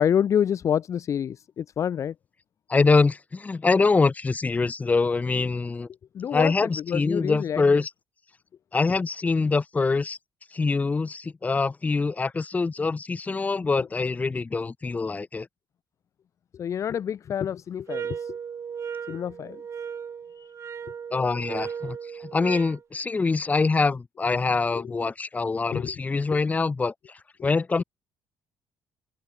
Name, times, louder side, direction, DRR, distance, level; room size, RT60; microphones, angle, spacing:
voice 1, 0.0-2.1 6.1-7.8 16.5-18.4 19.1-19.6 20.4-20.5 24.7-24.9 25.7-25.9 27.4-27.5, left 9 dB, 40° left, 0.6 m, -27 dB
voice 2, 2.7-5.9 6.3-7.9 8.7-10.2 10.5-15.5 21.1-26.9 27.4-27.8, left 4 dB, 20° left, 2.0 m, -24 dB
sound 1, 17.9-22.8, right 7 dB, 35° right, 5.8 m, -36 dB
open air
cardioid pair, 150°, 8 cm